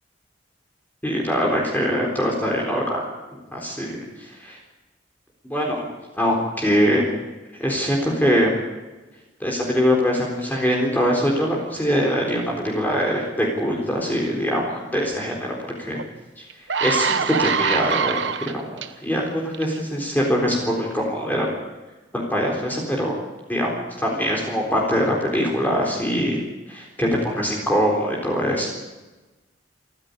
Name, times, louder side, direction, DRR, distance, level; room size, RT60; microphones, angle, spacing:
voice 1, 1.0-3.0 3.5-4.6 5.4-7.0 7.5-8.5 9.4-16.0 16.4-18.3 18.7-21.5 22.1-23.2 23.5-26.4 26.7-28.7, equal, 10° left, -1 dB, 4.0 m, -23 dB
sound 1, 15.9-16.0 16.5-18.9 19.5-19.8, right 6 dB, 75° right, 1.1 m, -23 dB
28.0 x 11.0 x 9.7 m, 1.2 s
head